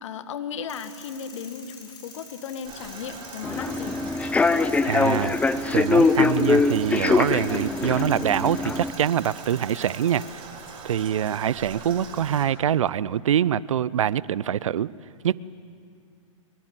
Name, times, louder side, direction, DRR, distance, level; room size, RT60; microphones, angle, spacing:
voice 1, 0.0-4.0, left 7 dB, 65° left, 10 dB, 1.7 m, -35 dB
sound 1, 0.7-10.3, left 4 dB, 25° left, 6.1 m, -47 dB
Toilet flush, 2.6-12.4, right 5 dB, 30° right, 3.8 m, -42 dB
Human voice / Subway metro underground, 3.4-8.9, left 3 dB, 10° left, 0.7 m, -22 dB
voice 2, 4.8-5.4 5.7-10.4 10.8-14.9 15.2-15.4, right 10 dB, 75° right, 21 dB, 0.6 m, -24 dB
24.0 x 22.5 x 7.8 m, 2.3 s
hypercardioid pair, 115°, 17 cm